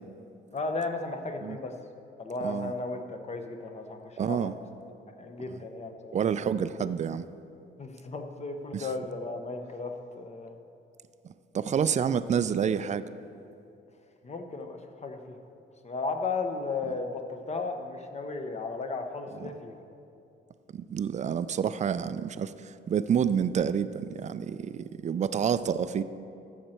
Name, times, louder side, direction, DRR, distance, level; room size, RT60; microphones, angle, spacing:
voice 1, 0.5-1.7 2.2-4.6 5.1-6.2 6.8-6.9 7.8-10.6 14.2-15.4 15.8-19.8, left 3 dB, 35° left, 5 dB, 1.0 m, -35 dB
voice 2, 4.2-4.5 6.1-7.3 8.7-8.9 11.5-13.0 20.7-26.0, right 7 dB, 35° right, 14 dB, 0.4 m, -28 dB
13.5 x 6.6 x 4.4 m, 2.7 s
cardioid pair, 90°, 20 cm